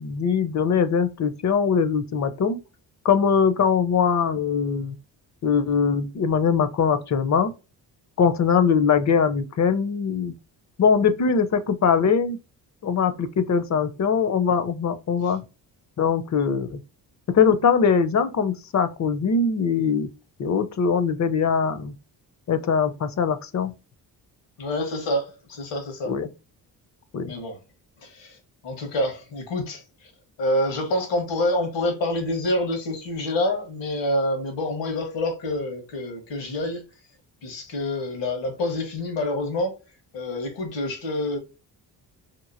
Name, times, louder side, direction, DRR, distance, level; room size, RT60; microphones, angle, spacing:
voice 1, 0.0-2.6 3.0-5.0 5.4-7.5 8.2-10.3 10.8-12.4 12.8-15.4 16.0-16.8 17.3-20.1 20.4-21.9 22.5-23.7 26.1-26.3 27.1-27.3, left 6 dB, 40° left, 0.6 m, -22 dB
voice 2, 24.6-26.1 27.3-27.6 28.0-28.4 28.6-30.1 30.4-36.8 37.4-39.8 40.1-41.4, left 1 dB, 80° left, 1.3 m, -27 dB
3.0 x 2.6 x 2.5 m
supercardioid pair, 60°, 43 cm